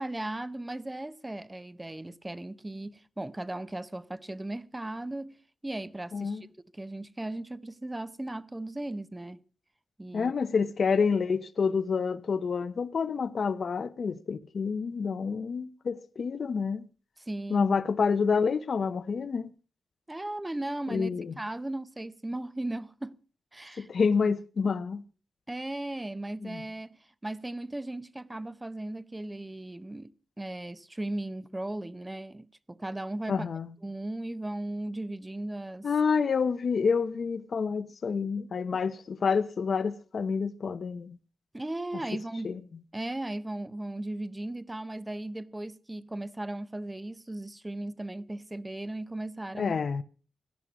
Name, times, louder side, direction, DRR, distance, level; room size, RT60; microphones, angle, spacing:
voice 1, 0.0-5.3 5.6-9.4 10.0-10.3 17.2-17.7 20.1-21.1 21.4-23.2 23.5-23.9 25.5-30.1 30.4-33.5 33.8-35.9 41.5-42.6 42.9-49.7, right 1 dB, 15° right, 0.7 m, -37 dB
voice 2, 10.1-16.9 17.5-19.5 20.9-21.3 23.8-25.0 26.4-26.6 33.3-33.7 35.8-41.2 42.4-42.6 49.5-50.0, left 5 dB, 55° left, 0.8 m, -28 dB
17.5 x 12.5 x 6.0 m
wide cardioid pair, 140°, 0 cm